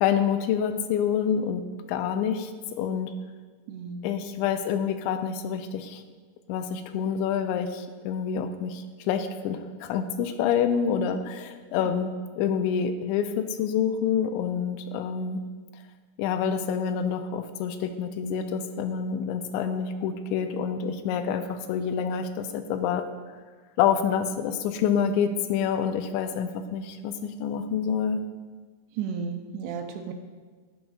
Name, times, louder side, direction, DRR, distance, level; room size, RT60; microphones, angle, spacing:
voice 1, 0.0-1.6 1.9-2.5 2.8-3.1 4.0-6.0 6.5-15.4 16.2-23.0 23.8-28.2, left 7 dB, 85° left, 8 dB, 2.8 m, -27 dB
voice 2, 3.7-4.1 11.9-12.0 29.0-30.1, right 6 dB, 80° right, 5 dB, 2.6 m, -33 dB
15.5 x 7.3 x 2.4 m, 1.5 s
omnidirectional pair, 5.2 m